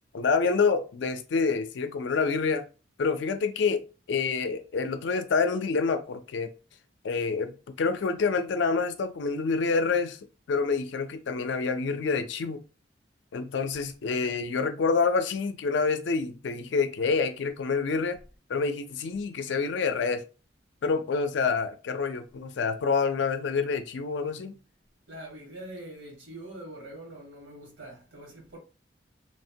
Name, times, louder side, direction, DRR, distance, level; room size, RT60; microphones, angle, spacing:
voice 1, 0.1-2.6 3.0-3.8 4.1-6.5 7.0-10.2 10.5-12.6 13.3-18.2 18.5-20.2 20.8-24.5, left 4 dB, 75° left, 0.4 m, -27 dB
voice 2, 25.1-28.6, right 1 dB, 85° right, 1.3 m, -44 dB
3.1 x 2.1 x 2.6 m
head